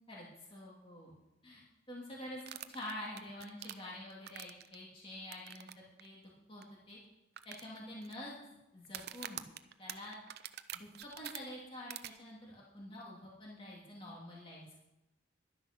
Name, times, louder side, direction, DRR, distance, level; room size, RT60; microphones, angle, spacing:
voice 1, 0.1-1.1 1.4-2.4 2.7-7.0 7.4-9.4 9.8-10.2 10.7-14.8, left 1 dB, 30° left, -5 dB, 2.7 m, -47 dB
sound 1, 2.4-4.8 5.3-5.7 6.0-6.1 6.6-6.7 7.4-8.1 8.8-11.4 11.9-12.1, right 11 dB, 60° right, 0.6 m, -45 dB
11.5 x 9.9 x 6.0 m, 0.95 s
head